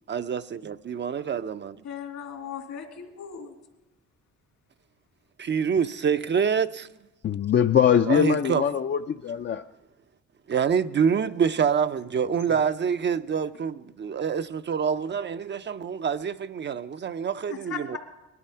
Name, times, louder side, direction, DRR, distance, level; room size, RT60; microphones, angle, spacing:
voice 1, 0.1-1.8 5.4-6.9 8.1-8.6 10.5-18.0, right 7 dB, 40° right, 0.5 m, -26 dB
voice 2, 1.8-3.5 17.5-18.0, left 7 dB, 70° left, 2.6 m, -37 dB
voice 3, 7.2-9.6, left 8 dB, 40° left, 0.5 m, -22 dB
19.5 x 12.0 x 5.6 m
cardioid pair, 90°, 30 cm